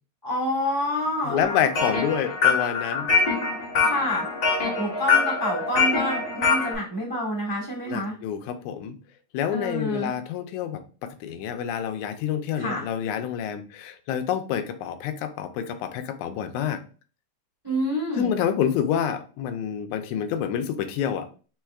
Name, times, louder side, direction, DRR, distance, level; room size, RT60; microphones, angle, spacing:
voice 1, 0.2-1.4 3.8-4.3 4.6-8.1 9.5-10.1 12.5-12.8 17.6-18.3, equal, 10° right, -3 dB, 1.1 m, -28 dB
voice 2, 1.2-3.1 7.9-9.0 9.3-16.8 18.2-21.3, left 8 dB, 85° left, 9 dB, 2.0 m, -28 dB
sound 1, 1.4-6.7, left 5 dB, 45° left, 1.3 m, -24 dB
4.7 x 4.4 x 2.3 m, 0.38 s
omnidirectional pair, 3.3 m